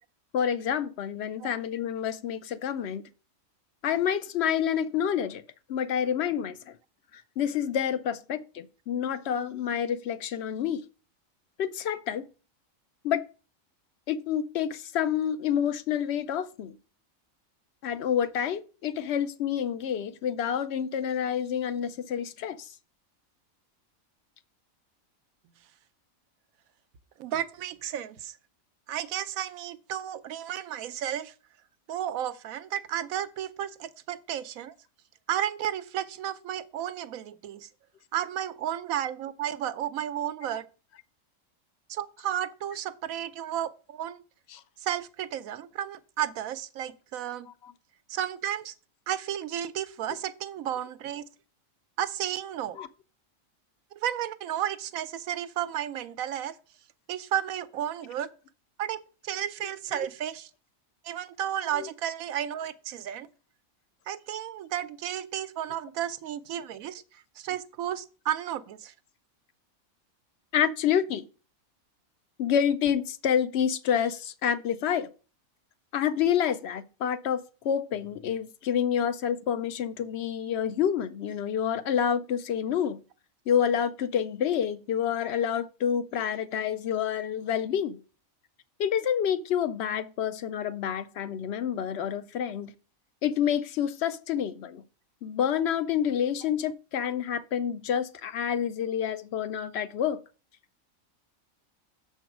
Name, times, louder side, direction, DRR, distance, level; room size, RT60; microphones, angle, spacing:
voice 1, 0.3-3.0 3.8-5.4 5.7-6.7 7.1-10.8 11.6-12.3 13.0-13.2 14.1-16.8 17.8-22.7 44.5-44.6 47.6-47.7 52.8-52.9 61.7-61.9 70.5-71.2 72.4-75.1 75.9-83.0 83.5-88.0 88.8-92.7 93.2-94.8 95.2-100.2, left 8 dB, 65° left, 0.7 m, -28 dB
voice 2, 27.2-28.4 28.9-31.3 31.9-34.8 35.3-37.7 38.1-40.7 41.9-44.2 44.8-47.5 48.1-48.7 49.1-51.3 52.0-52.8 53.9-56.6 57.1-58.3 58.8-60.5 61.0-63.3 64.1-68.9, right 10 dB, 80° right, 1.0 m, -33 dB
7.0 x 4.6 x 5.9 m
omnidirectional pair, 1.4 m